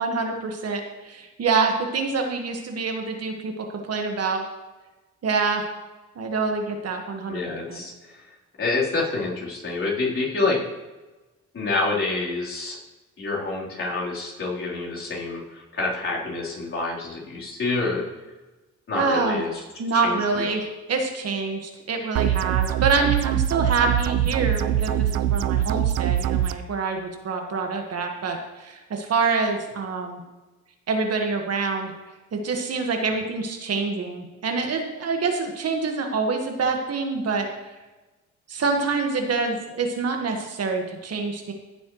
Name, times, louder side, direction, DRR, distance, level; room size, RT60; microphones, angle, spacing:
voice 1, 0.0-4.4 5.2-5.6 6.1-7.4 7.7-7.8 18.9-19.4 19.8-30.2 30.9-31.9 32.3-37.5 38.5-41.5, right 4 dB, 55° right, 3 dB, 1.6 m, -26 dB
voice 2, 7.3-8.2 8.6-10.6 11.5-12.8 13.2-18.0 18.9-19.6 20.0-20.5, left 3 dB, 45° left, -5 dB, 3.8 m, -27 dB
sound 1, 22.2-26.5, right 11 dB, 75° right, 0.5 m, -23 dB
15.0 x 7.1 x 3.2 m, 1.1 s
cardioid pair, 90°, 30 cm